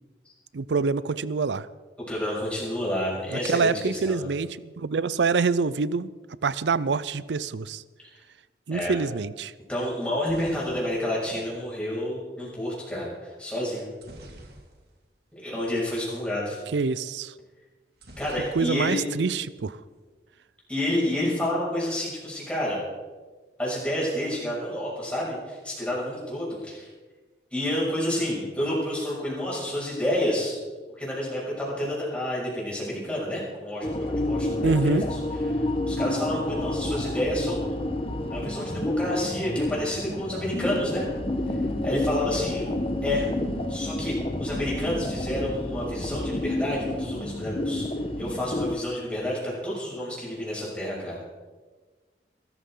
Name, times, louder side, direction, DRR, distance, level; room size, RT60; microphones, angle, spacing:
voice 1, 0.5-1.7 3.3-6.1 6.4-7.8 8.7-9.5 16.7-17.3 18.6-19.8 34.6-35.1, right 4 dB, 85° right, 17 dB, 0.5 m, -26 dB
voice 2, 2.1-4.3 8.7-8.9 9.7-13.8 15.3-16.6 18.2-19.0 20.7-22.8 23.6-26.9 27.5-30.6 30.9-35.2 35.5-37.7 38.3-41.1 41.5-41.6 41.8-42.7 43.0-43.3 43.7-47.9 48.2-51.2, left 1 dB, 5° left, -6 dB, 6.4 m, -29 dB
sound 1, 9.9-12.0 14.0-15.1 15.4-15.6 15.8-16.0 18.0-19.1 19.4-20.0, right 1 dB, 65° right, 2.4 m, -48 dB
sound 2, 33.8-48.8, left 1 dB, 30° left, 1.1 m, -29 dB
22.0 x 14.0 x 3.8 m, 1.4 s
head